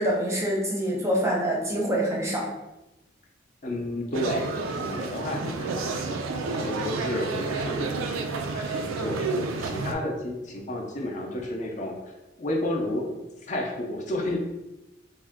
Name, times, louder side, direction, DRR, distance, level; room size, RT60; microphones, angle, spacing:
voice 1, 0.0-2.5, right 1 dB, 15° right, -2 dB, 0.6 m, -25 dB
voice 2, 3.6-12.0 12.4-13.1 13.5-14.4, left 1 dB, 35° left, 1 dB, 0.5 m, -32 dB
sound 1, 4.1-9.9, right 4 dB, 80° right, 0.4 m, -30 dB
3.6 x 2.1 x 3.4 m, 1.0 s
head